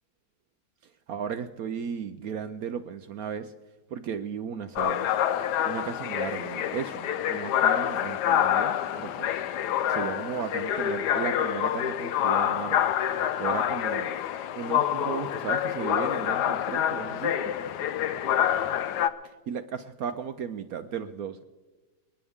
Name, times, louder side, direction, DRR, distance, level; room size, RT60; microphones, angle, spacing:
voice 1, 0.8-3.5 3.9-5.1 5.6-9.4 9.9-12.9 13.4-14.2 14.5-17.5 19.2-21.4, right 7 dB, 65° right, 10 dB, 0.9 m, -35 dB
sound 1, 4.8-19.1, left 10 dB, 70° left, 1.1 m, -27 dB
29.0 x 9.8 x 3.6 m, 1.2 s
omnidirectional pair, 2.0 m